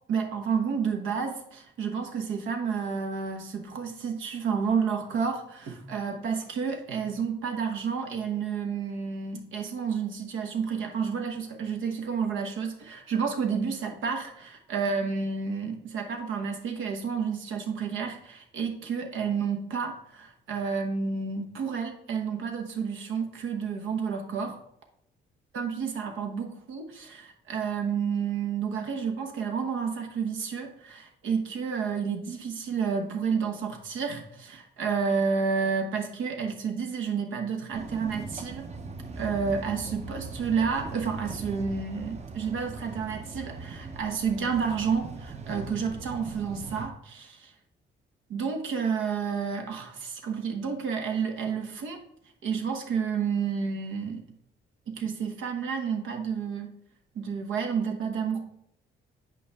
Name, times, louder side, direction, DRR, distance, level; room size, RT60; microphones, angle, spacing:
voice 1, 0.1-24.6 25.5-38.7 39.2-47.5 48.3-52.0 52.4-54.2 54.9-56.7 57.1-58.5, right 6 dB, 80° right, 3 dB, 1.1 m, -30 dB
sound 1, 37.7-46.9, right 3 dB, 35° right, 0.8 m, -40 dB
8.4 x 4.9 x 3.4 m, 0.75 s
cardioid pair, 90°, 20 cm